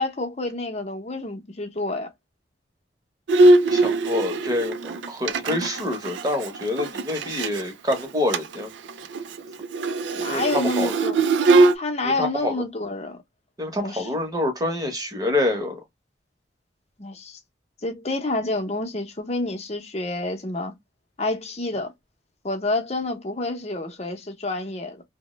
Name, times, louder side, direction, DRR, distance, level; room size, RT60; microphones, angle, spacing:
voice 1, 0.0-2.1 10.1-11.3 11.7-13.2 13.8-14.2 17.0-17.4 17.8-20.7 21.2-21.9 22.4-25.0, left 2 dB, 35° left, 0.7 m, -28 dB
Bowed string instrument, 3.3-7.6 7.9-8.0 8.3-8.6 8.9-11.8, right 2 dB, 90° right, 0.4 m, -20 dB
voice 2, 3.7-8.7 10.3-10.9 12.0-12.5 13.6-15.8, left 1 dB, 20° right, 0.8 m, -27 dB
3.0 x 2.1 x 3.0 m
head